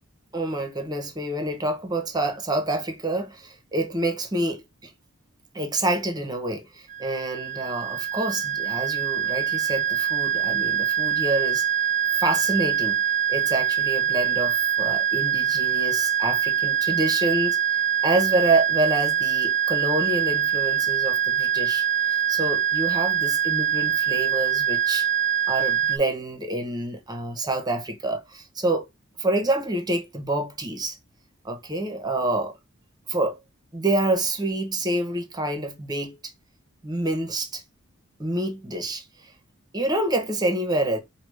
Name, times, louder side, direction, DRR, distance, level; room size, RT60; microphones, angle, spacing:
voice 1, 0.3-4.9 5.5-11.6 12.1-13.0 13.3-25.1 25.5-28.9 29.2-31.0 31.4-32.6 33.1-33.4 33.7-36.1 36.8-37.6 38.2-39.3 39.7-41.0, right 2 dB, 20° right, 0.9 m, -27 dB
sound 1, 6.9-26.0, right 9 dB, 35° right, 0.4 m, -24 dB
4.9 x 2.3 x 3.2 m
head